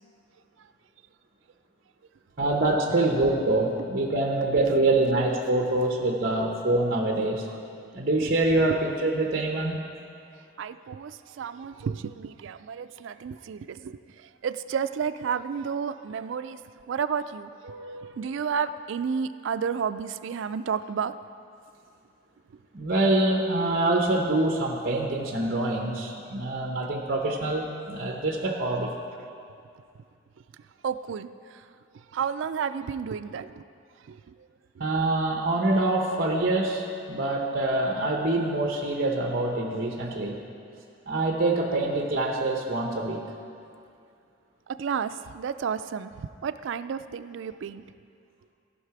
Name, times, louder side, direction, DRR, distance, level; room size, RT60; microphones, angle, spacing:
voice 1, 2.4-7.5 7.9-9.8 17.7-18.1 22.7-28.9 34.8-40.4 41.1-43.2, right 2 dB, 45° right, 0 dB, 0.8 m, -25 dB
voice 2, 10.6-16.6 16.9-17.7 18.1-21.1 30.8-31.7 32.1-33.6 34.1-34.5 44.7-47.8, right 6 dB, 65° right, 12 dB, 0.3 m, -31 dB
16.0 x 5.7 x 4.7 m, 2.4 s
head